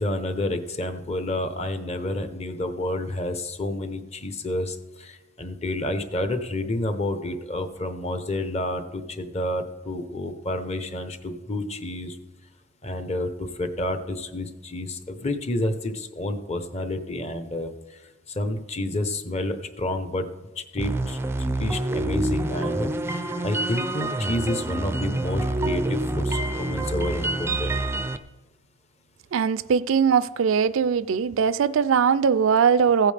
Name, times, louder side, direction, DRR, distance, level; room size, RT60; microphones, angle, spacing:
voice 1, 0.0-12.2 12.8-20.3 20.6-21.2 21.6-27.7, left 1 dB, 30° left, 0.8 m, -29 dB
sound 1, 20.8-28.2, right 2 dB, 10° right, 0.4 m, -27 dB
voice 2, 29.3-33.1, right 6 dB, 80° right, 0.4 m, -20 dB
15.5 x 9.0 x 3.4 m
head